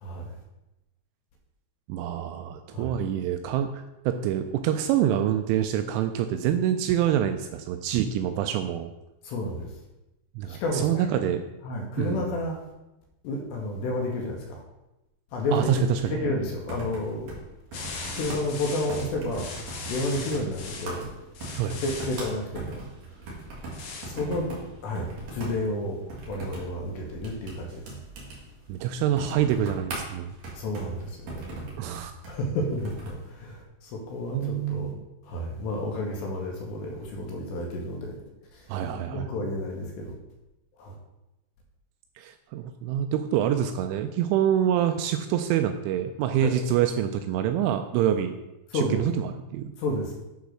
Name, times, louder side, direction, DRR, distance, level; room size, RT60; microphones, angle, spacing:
voice 1, 1.9-8.9 10.4-11.4 12.0-12.3 15.5-16.2 21.6-21.8 28.7-30.4 31.8-32.1 34.3-34.9 38.7-39.4 42.2-48.3 48.7-49.7, right 10 dB, 85° right, 7 dB, 2.8 m, -26 dB
voice 2, 9.3-9.7 10.5-11.3 11.7-12.6 13.2-14.4 15.3-17.4 18.2-19.5 19.9-21.1 21.8-22.8 24.1-24.5 24.8-25.1 25.3-26.0 26.3-27.8 30.6-31.7 32.3-33.6 34.1-34.9 35.3-38.2 38.9-40.1 40.8-40.9 46.4-46.5 48.7-49.0 49.8-50.1, left 1 dB, 70° left, 0 dB, 2.9 m, -30 dB
sound 1, 15.4-33.3, right 2 dB, 50° right, 2.4 m, -40 dB
sound 2, 17.7-20.9 21.3-22.3 23.7-24.1, left 4 dB, 85° left, 1.7 m, -39 dB
9.3 x 4.0 x 6.3 m, 0.96 s
omnidirectional pair, 5.8 m